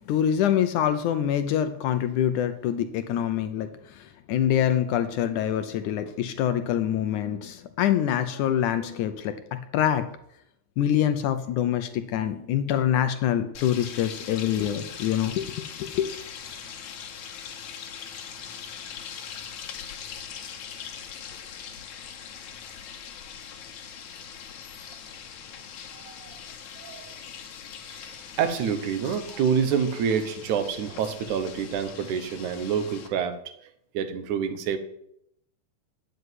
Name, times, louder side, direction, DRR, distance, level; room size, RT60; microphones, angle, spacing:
voice 1, 0.1-9.4 9.7-10.1 10.8-16.1, left 10 dB, 75° left, 9 dB, 1.9 m, -25 dB
sound 1, 13.5-33.1, left 7 dB, 60° left, 2.5 m, -41 dB
voice 2, 25.9-26.4 26.8-27.2 27.9-33.7 33.9-34.8, right 7 dB, 65° right, 10 dB, 2.2 m, -28 dB
9.8 x 8.0 x 9.5 m, 0.76 s
omnidirectional pair, 4.2 m